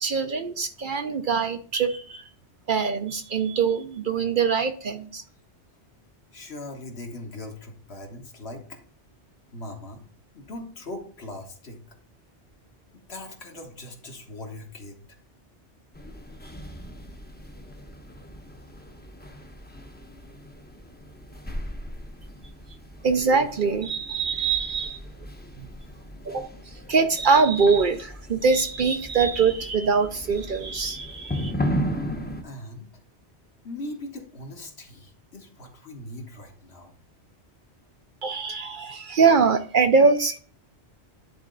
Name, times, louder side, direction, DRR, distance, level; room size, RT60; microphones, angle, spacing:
voice 1, 0.0-2.2 2.7-5.2 23.0-25.0 26.3-26.5 26.9-31.5 38.2-40.4, right 5 dB, 55° right, 8 dB, 0.7 m, -23 dB
voice 2, 6.3-8.8 9.5-10.0 10.3-11.8 13.1-15.0 32.4-32.9 33.6-36.9, left 1 dB, 65° left, 2 dB, 1.7 m, -40 dB
sound 1, 15.9-32.4, equal, 10° left, 0.7 m, -36 dB
10.5 x 4.2 x 3.9 m, 0.44 s
omnidirectional pair, 1.2 m